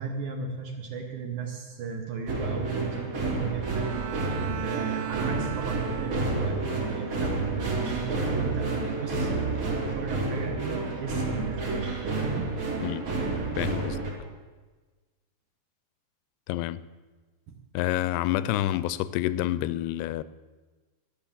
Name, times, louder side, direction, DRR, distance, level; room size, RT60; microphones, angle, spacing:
voice 1, 0.0-4.0 4.6-12.5 17.5-17.6, right 5 dB, 65° right, 3 dB, 2.0 m, -35 dB
sound 1, 2.3-14.1, right 3 dB, 45° right, 3.3 m, -30 dB
Bowed string instrument, 3.6-6.8, right 11 dB, 80° right, 2.6 m, -38 dB
voice 2, 13.6-14.0 16.5-16.8 17.7-20.2, left 14 dB, 90° left, 16 dB, 2.6 m, -28 dB
12.0 x 10.0 x 7.1 m, 1.3 s
omnidirectional pair, 4.6 m